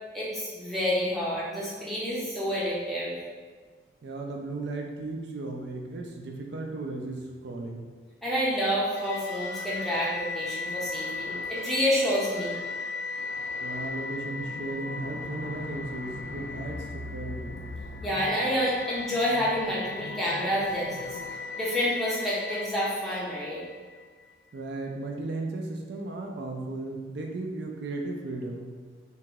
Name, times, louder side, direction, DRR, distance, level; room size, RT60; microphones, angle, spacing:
voice 1, 0.1-3.1 8.2-12.6 18.0-21.2 21.5-23.6, equal, ahead, -8 dB, 0.7 m, -28 dB
voice 2, 4.0-7.9 13.6-17.6 24.5-28.7, right 2 dB, 65° right, 1 dB, 0.4 m, -35 dB
sound 1, 8.9-24.1, left 3 dB, 75° left, 0.3 m, -37 dB
2.9 x 2.8 x 3.5 m, 1.5 s
head